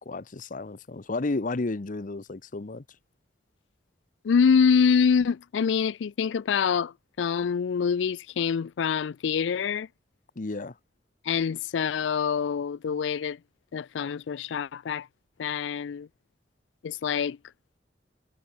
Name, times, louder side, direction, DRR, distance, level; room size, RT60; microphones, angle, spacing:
voice 1, 0.0-2.8 10.4-10.8, left 3 dB, 45° left, 0.8 m, -32 dB
voice 2, 4.2-9.9 11.2-13.4 13.7-15.1 15.4-16.1 16.8-17.4, left 6 dB, 75° left, 0.4 m, -25 dB
head